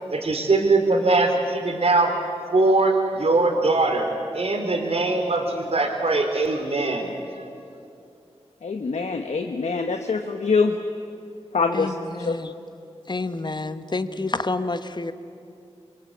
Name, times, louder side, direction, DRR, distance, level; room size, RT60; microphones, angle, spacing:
voice 1, 0.1-2.1 2.5-4.1 4.3-7.1 7.4-7.5, right 3 dB, 60° right, 3 dB, 4.0 m, -21 dB
voice 2, 8.6-10.7 11.5-12.4, left 4 dB, 80° left, 5 dB, 1.2 m, -24 dB
voice 3, 11.7-12.5 13.1-15.1, left 3 dB, 40° left, 10 dB, 1.4 m, -29 dB
28.0 x 23.5 x 8.8 m, 2.5 s
cardioid pair, 50°, 11 cm